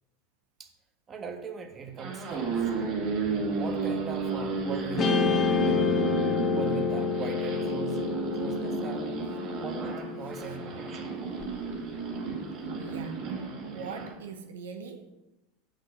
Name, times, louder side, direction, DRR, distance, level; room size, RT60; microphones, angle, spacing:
voice 1, 1.1-3.0 3.5-5.1 5.5-6.1 6.5-9.1 9.6-11.1, right 5 dB, 25° right, 5 dB, 1.5 m, -40 dB
sound 1, 1.8-14.1, right 4 dB, 50° right, 2.9 m, -33 dB
Guitar, 5.0-11.4, left 5 dB, 30° left, 1.3 m, -29 dB
voice 2, 12.8-13.2 13.7-15.1, right 5 dB, 90° right, 6 dB, 1.2 m, -41 dB
7.8 x 6.6 x 6.9 m, 0.98 s
supercardioid pair, 120°, 0 cm